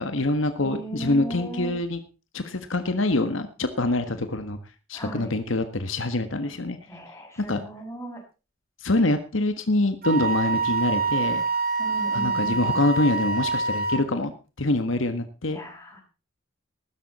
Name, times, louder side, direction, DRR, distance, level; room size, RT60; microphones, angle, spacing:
voice 1, 0.0-2.0 2.3-4.6 4.9-6.8 7.5-7.6 8.8-11.4 12.1-15.6, left 2 dB, 80° left, 8 dB, 1.6 m, -25 dB
voice 2, 0.6-1.7 4.9-5.3 6.9-8.2 11.8-12.9 15.5-16.0, right 1 dB, 15° left, 0 dB, 6.8 m, -36 dB
Wind instrument woodwind instrument, 10.0-14.0, right 4 dB, 50° right, 2.6 m, -26 dB
15.5 x 13.0 x 4.2 m, 0.33 s
head